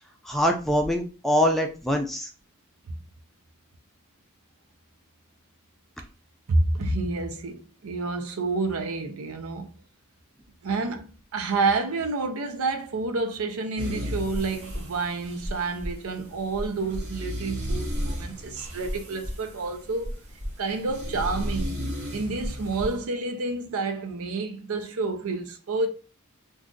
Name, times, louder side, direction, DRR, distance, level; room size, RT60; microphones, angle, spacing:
voice 1, 0.2-2.3, equal, ahead, 0.4 m, -24 dB
voice 2, 6.5-9.7 10.6-20.2 20.6-21.8 22.1-25.9, right 3 dB, 75° right, 0.6 m, -29 dB
sound 1, 13.8-23.0, equal, 35° right, 0.8 m, -33 dB
2.6 x 2.3 x 3.7 m
head